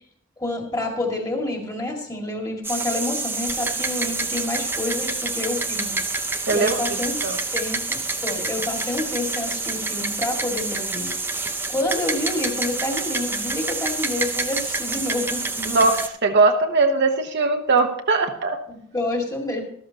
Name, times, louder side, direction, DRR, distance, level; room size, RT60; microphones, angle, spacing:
voice 1, 0.4-7.2 7.5-11.1 11.4-15.8 18.7-19.6, left 2 dB, 20° left, 1 dB, 2.1 m, -28 dB
sound 1, 2.6-16.1, right 3 dB, 10° right, 0.7 m, -27 dB
voice 2, 6.5-7.4 15.7-18.6, right 3 dB, 55° right, 4 dB, 1.0 m, -20 dB
13.0 x 12.5 x 2.9 m, 0.66 s
head